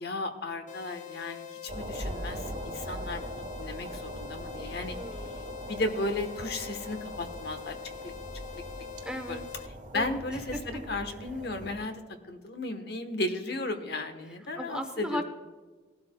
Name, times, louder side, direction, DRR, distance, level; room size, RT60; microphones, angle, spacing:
voice 1, 0.0-5.0 5.7-7.8 8.0-8.1 8.5-8.8 9.3-9.4 9.9-12.0 12.3-15.2, left 2 dB, 60° left, 7 dB, 1.1 m, -35 dB
sound 1, 0.7-9.7, left 11 dB, 40° left, 0.6 m, -44 dB
sound 2, 1.7-11.8, right 1 dB, 45° right, 1.1 m, -41 dB
voice 2, 4.9-5.7 9.0-9.4 9.9-10.2 10.5-10.8 14.6-15.2, equal, 5° right, 6 dB, 0.8 m, -37 dB
18.5 x 12.0 x 2.2 m, 1.4 s
head